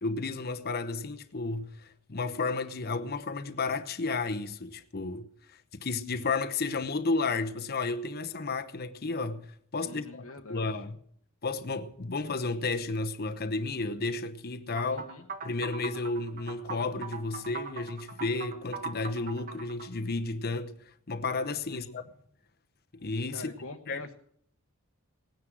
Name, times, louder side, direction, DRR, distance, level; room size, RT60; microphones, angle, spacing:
voice 1, 0.0-5.2 5.8-10.2 10.5-10.9 11.4-15.1 15.4-22.0 22.9-23.5 23.9-24.1, left 3 dB, 45° left, 0.9 m, -32 dB
voice 2, 9.8-10.8 14.9-15.5 21.7-22.1 23.3-24.1, left 2 dB, 65° left, 1.1 m, -45 dB
sound 1, 14.8-19.9, right 5 dB, 40° right, 1.6 m, -40 dB
18.5 x 9.9 x 6.1 m
head